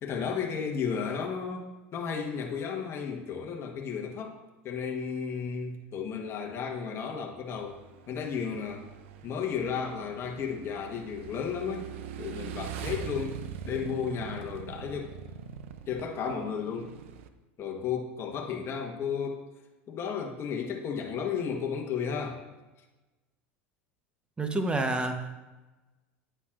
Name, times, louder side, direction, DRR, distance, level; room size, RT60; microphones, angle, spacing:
voice 1, 0.0-4.4 4.6-7.8 8.1-8.8 9.2-11.9 12.2-15.2 15.9-16.9 17.6-19.4 19.9-22.4, left 6 dB, 40° left, 1 dB, 1.2 m, -33 dB
Motorcycle / Engine, 7.5-17.3, right 8 dB, 75° right, 0.6 m, -42 dB
voice 2, 24.4-25.3, right 2 dB, 15° right, 6 dB, 1.0 m, -29 dB
9.6 x 8.9 x 2.5 m, 1.1 s
hypercardioid pair, 95°, 7 cm